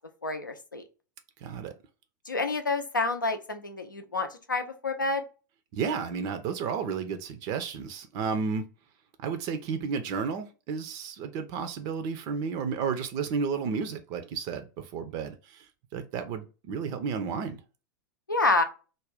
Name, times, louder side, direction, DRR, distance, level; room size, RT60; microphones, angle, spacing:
voice 1, 0.2-0.8 2.3-5.2 18.3-18.6, left 3 dB, 90° left, 0.5 m, -28 dB
voice 2, 1.4-1.7 5.7-8.6 9.2-15.7 15.9-17.6, right 6 dB, 40° right, 0.4 m, -32 dB
2.5 x 2.2 x 3.3 m
figure-of-eight pair, 95°, 10 cm